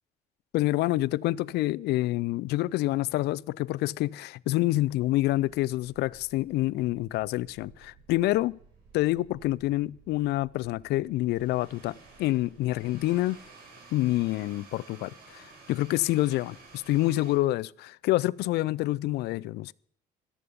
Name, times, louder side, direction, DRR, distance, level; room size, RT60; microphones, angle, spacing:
voice 1, 0.5-8.6 8.9-13.4 13.9-19.7, left 17 dB, 75° left, 0.4 m, -27 dB
sound 1, 4.9-17.4, right 4 dB, 65° right, 5.8 m, -54 dB
14.0 x 12.5 x 5.2 m
cardioid pair, 110°, 17 cm